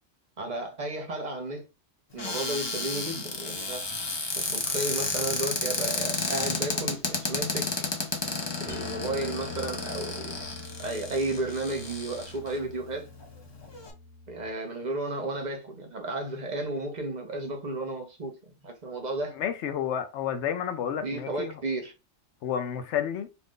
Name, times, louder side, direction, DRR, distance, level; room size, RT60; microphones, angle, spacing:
voice 1, 0.4-1.7 2.1-3.9 4.3-7.9 8.6-10.4 10.8-13.1 14.3-19.4 21.0-21.9, right 2 dB, 45° right, 0.7 m, -33 dB
Cupboard open or close, 2.2-12.5 13.2-13.3 13.6-13.9, left 3 dB, 40° left, 0.4 m, -32 dB
sound 1, 8.7-14.5, left 3 dB, ahead, 0.8 m, -43 dB
voice 2, 19.4-21.5 22.4-23.3, left 9 dB, 70° left, 0.9 m, -30 dB
2.5 x 2.5 x 3.5 m
omnidirectional pair, 1.3 m